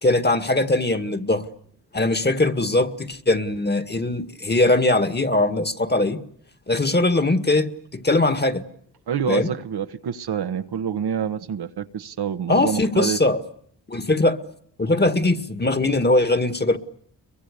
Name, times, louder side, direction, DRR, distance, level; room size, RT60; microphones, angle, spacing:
voice 1, 0.0-1.5 1.9-6.2 6.7-8.6 9.3-9.5 12.5-13.4 13.9-14.4 14.8-16.8, left 2 dB, 25° left, 2.0 m, -21 dB
voice 2, 9.1-13.2, right 8 dB, 65° right, 1.4 m, -27 dB
30.0 x 23.5 x 6.8 m
cardioid pair, 55°, 41 cm